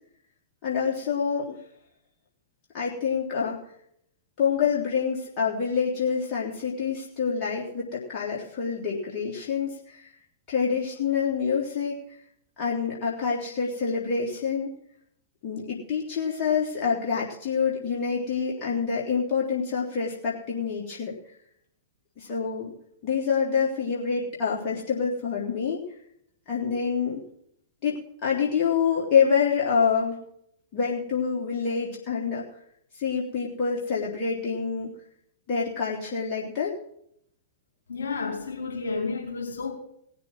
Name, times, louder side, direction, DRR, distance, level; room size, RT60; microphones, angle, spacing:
voice 1, 0.6-1.6 2.7-3.6 4.4-10.1 10.5-12.0 12.6-14.7 15.4-21.1 22.2-22.7 23.0-25.8 26.5-27.2 27.8-30.2 30.7-32.4 32.9-34.9 35.5-36.8, left 6 dB, 40° left, 3.4 m, -27 dB
voice 2, 37.9-39.7, left 4 dB, 70° left, 4.9 m, -31 dB
18.5 x 6.9 x 6.0 m
figure-of-eight pair, 105°, 0 cm